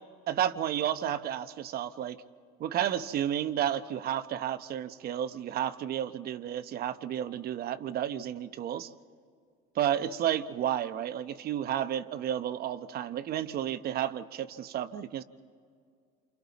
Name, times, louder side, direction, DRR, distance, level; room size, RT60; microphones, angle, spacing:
voice 1, 0.3-2.2 2.6-8.9 9.7-15.2, right 10 dB, 50° right, 12 dB, 0.9 m, -32 dB
28.5 x 28.0 x 4.1 m, 2.2 s
supercardioid pair, 110°, 21 cm